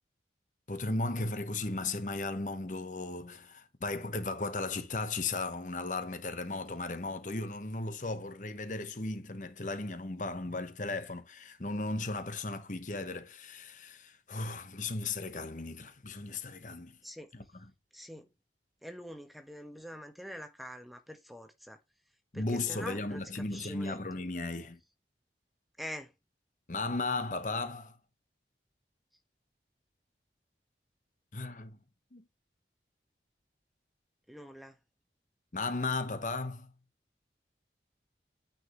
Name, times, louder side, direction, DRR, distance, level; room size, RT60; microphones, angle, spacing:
voice 1, 0.7-17.0 17.3-17.4 22.3-24.8 26.7-28.0 31.3-31.8 32.1-32.2 35.5-36.7, left 3 dB, 45° left, 1.0 m, -36 dB
voice 2, 17.9-18.3 18.8-21.8 22.3-24.0 25.8-26.1 34.3-34.8, equal, ahead, 1.2 m, -45 dB
9.5 x 5.5 x 3.0 m
head